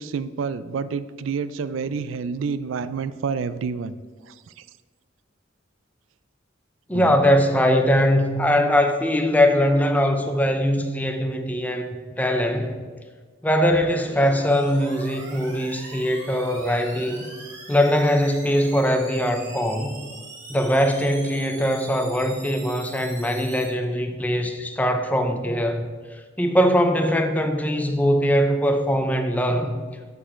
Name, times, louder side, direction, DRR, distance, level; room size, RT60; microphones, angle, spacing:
voice 1, 0.0-3.9 4.3-4.6 6.9-7.2, right 5 dB, 80° right, 14 dB, 0.4 m, -29 dB
voice 2, 6.9-12.7 13.4-17.3 17.7-19.9 20.5-25.9 26.4-29.8, equal, 10° left, 5 dB, 0.6 m, -21 dB
sound 1, 13.6-23.6, right 2 dB, 65° right, 2.2 m, -42 dB
7.1 x 6.8 x 4.4 m, 1.5 s
head